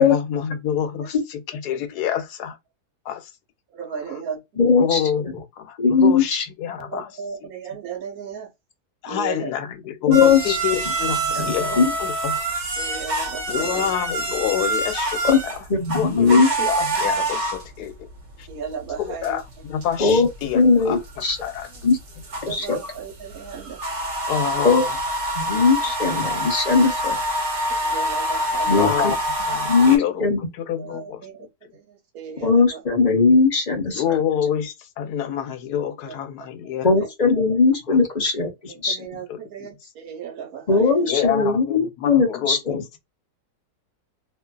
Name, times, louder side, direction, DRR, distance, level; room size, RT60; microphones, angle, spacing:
voice 1, 0.0-2.6 3.1-3.3 4.8-7.1 9.0-12.4 13.5-15.5 15.9-18.1 18.4-18.5 19.0-21.0 21.4-21.7 24.3-24.9 28.8-29.2 29.5-30.3 30.6-31.3 34.0-36.9 37.9-38.0 39.3-39.4 41.1-43.0, left 9 dB, 80° left, 1.1 m, -27 dB
voice 2, 3.7-4.4 6.8-8.5 9.1-9.5 11.6-11.8 12.3-12.4 12.8-14.0 18.5-19.4 20.9-21.0 22.4-23.8 24.4-24.7 25.4-25.6 27.8-29.1 30.8-32.8 36.4-37.1 38.7-41.1, right 6 dB, 70° right, 1.2 m, -35 dB
voice 3, 4.6-5.0 5.8-6.2 10.1-10.6 11.3-11.9 15.3-15.4 15.7-16.5 20.0-20.3 20.5-21.4 21.8-22.0 22.5-22.8 24.6-24.8 25.4-27.2 28.7-29.1 29.6-30.4 32.4-34.0 36.8-38.5 38.8-39.0 40.7-42.8, left 4 dB, 40° left, 0.6 m, -18 dB
sound 1, 10.1-30.0, right 1 dB, 50° right, 1.1 m, -27 dB
2.7 x 2.4 x 2.3 m
omnidirectional pair, 1.7 m